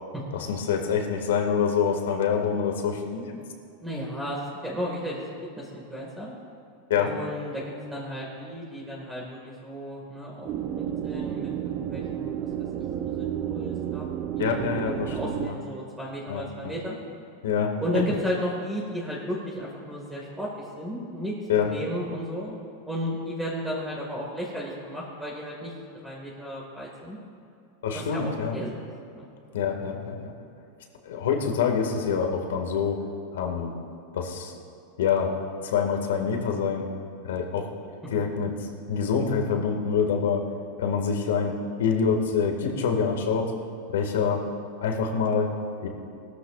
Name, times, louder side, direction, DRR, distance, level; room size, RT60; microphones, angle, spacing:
voice 1, 0.3-3.4 6.9-7.1 14.4-15.5 16.3-16.7 17.4-18.0 21.5-21.7 27.8-28.5 29.5-30.3 31.0-33.0 33.3-33.8 34.1-34.6 35.0-35.4 35.6-36.9 37.2-37.7 38.1-40.5 40.8-43.5 43.9-44.5 44.8-45.5 45.8-45.9, left 6 dB, 90° left, 2 dB, 2.0 m, -26 dB
voice 2, 3.8-6.3 7.0-7.6 7.9-10.5 10.8-12.4 13.0-14.1 14.4-17.0 17.8-21.3 21.6-22.6 22.9-25.7 26.0-27.2 27.9-29.3, equal, 5° right, -4 dB, 1.9 m, -34 dB
sound 1, 10.4-15.5, right 10 dB, 35° right, 0.7 m, -31 dB
19.5 x 13.5 x 2.5 m, 2.6 s
supercardioid pair, 150°, 0 cm